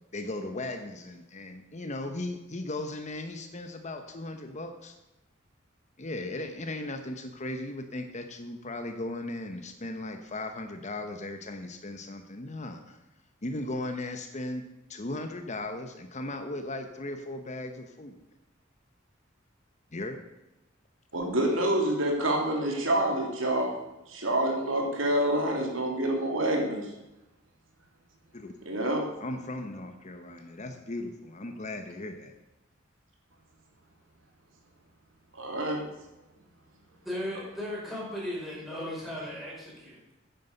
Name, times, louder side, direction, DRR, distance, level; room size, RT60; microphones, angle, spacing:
voice 1, 0.1-4.9 6.0-13.0 13.4-14.6 14.9-18.2 19.9-20.2 28.3-28.5 29.2-32.3, left 2 dB, 35° left, 6 dB, 1.0 m, -37 dB
voice 2, 21.1-23.7 24.1-26.9 28.6-29.0 35.3-35.8, right 1 dB, 75° right, 1 dB, 3.0 m, -27 dB
voice 3, 37.0-40.1, left 1 dB, ahead, -5 dB, 5.2 m, -36 dB
9.7 x 9.6 x 6.8 m, 0.96 s
head